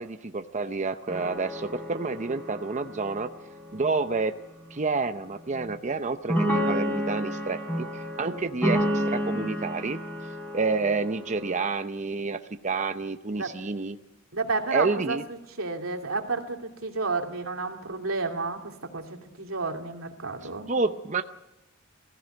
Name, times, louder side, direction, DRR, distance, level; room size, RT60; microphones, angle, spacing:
voice 1, 0.0-3.3 3.7-4.4 4.7-10.0 10.5-14.0 14.7-15.2 20.4-21.2, right 4 dB, 35° right, 8 dB, 0.7 m, -29 dB
sound 1, 1.1-4.2 5.6-5.7 6.3-11.6, equal, 5° left, 5.2 m, -30 dB
voice 2, 14.3-15.2 15.6-19.0 19.4-20.7, right 3 dB, 90° right, 3 dB, 2.8 m, -31 dB
21.5 x 15.5 x 9.2 m, 0.96 s
head